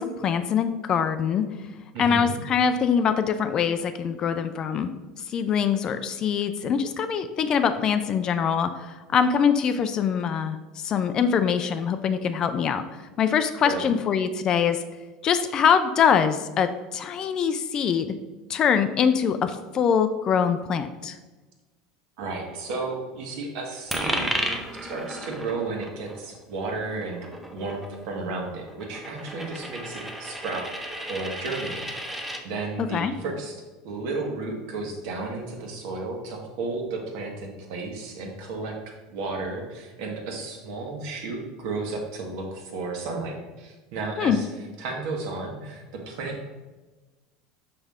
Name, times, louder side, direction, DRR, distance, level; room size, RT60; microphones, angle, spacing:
voice 1, 0.0-1.4 2.0-4.9 5.3-12.8 13.2-14.8 15.2-18.1 18.5-21.2 32.8-33.1 44.2-44.4, left 7 dB, 35° left, 10 dB, 0.4 m, -23 dB
voice 2, 1.9-2.3 13.6-13.9 22.2-24.5 24.8-44.5 44.8-46.5, right 3 dB, 70° right, 1 dB, 1.6 m, -33 dB
Coin (dropping), 23.9-32.4, right 1 dB, 5° right, 0.7 m, -34 dB
6.0 x 5.5 x 3.6 m, 1.2 s
supercardioid pair, 140°, 2 cm